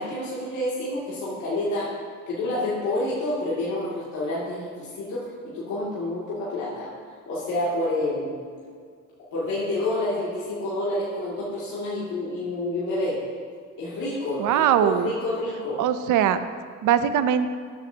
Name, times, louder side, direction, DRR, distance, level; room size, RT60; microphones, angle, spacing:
voice 1, 0.0-1.9 2.3-6.9 7.3-8.3 9.3-13.2 13.8-15.8, left 1 dB, 85° left, -9 dB, 2.6 m, -28 dB
voice 2, 14.4-15.1 15.8-16.4 16.8-17.5, right 9 dB, 85° right, 11 dB, 0.7 m, -21 dB
14.0 x 9.5 x 2.9 m, 2.1 s
cardioid pair, 90°, 30 cm